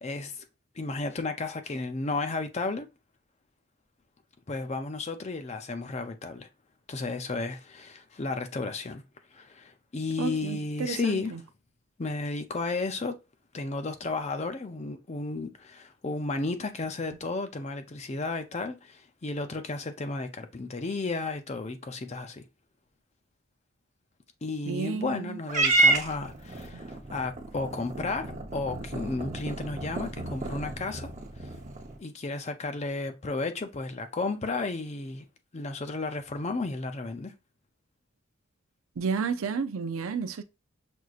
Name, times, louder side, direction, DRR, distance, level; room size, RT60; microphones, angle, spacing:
voice 1, 0.0-0.4 0.8-2.9 4.5-6.5 6.9-9.0 9.3-11.3 12.0-13.1 13.5-22.4 24.4-31.1 31.4-31.5 32.0-35.2 35.5-37.3, left 3 dB, 30° left, 0.5 m, -33 dB
voice 2, 10.2-11.4 24.7-25.4 39.0-40.4, right 5 dB, 70° right, 0.5 m, -31 dB
Purr / Meow, 25.5-32.0, right 2 dB, 35° right, 0.8 m, -30 dB
6.1 x 2.7 x 2.4 m
head